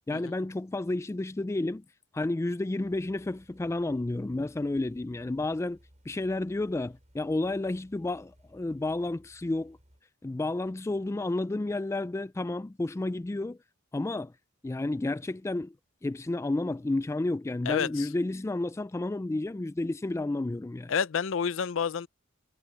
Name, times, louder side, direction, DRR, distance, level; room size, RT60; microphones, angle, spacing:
voice 1, 0.1-1.8 2.1-5.8 6.1-9.8 10.2-13.6 13.9-14.3 14.6-15.7 16.0-20.9, left 2 dB, 15° left, 0.3 m, -31 dB
sound 1, 2.8-10.0, equal, 35° right, 7.4 m, -61 dB
voice 2, 17.7-18.1 20.9-22.1, left 6 dB, 70° left, 0.5 m, -29 dB
head